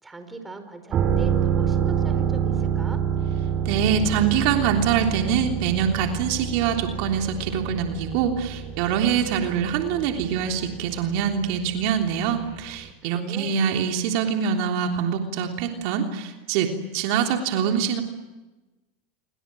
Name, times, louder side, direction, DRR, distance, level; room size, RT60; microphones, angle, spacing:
voice 1, 0.0-3.0 13.0-13.5, right 3 dB, 10° right, 8 dB, 4.9 m, -39 dB
sound 1, 0.9-12.5 12.8-12.9, right 8 dB, 35° right, 2.9 m, -27 dB
voice 2, 3.6-18.0, right 7 dB, 60° right, 3 dB, 3.3 m, -24 dB
29.0 x 24.5 x 7.7 m, 1.1 s
hypercardioid pair, 115°, 0 cm